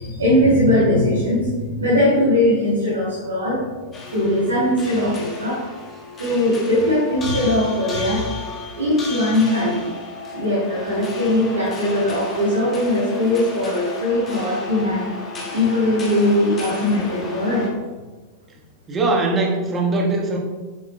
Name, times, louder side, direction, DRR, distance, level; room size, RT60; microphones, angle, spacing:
voice 1, 0.0-3.6 4.1-5.6 6.2-8.4 8.8-9.9 10.3-15.1 15.5-17.7, left 1 dB, 75° right, -8 dB, 2.2 m, -20 dB
sound 1, 3.9-17.7, left 3 dB, 25° left, 1.6 m, -34 dB
voice 2, 18.9-20.4, right 2 dB, 20° right, 0 dB, 1.4 m, -21 dB
8.8 x 7.0 x 2.2 m, 1.3 s
figure-of-eight pair, 90°, 0 cm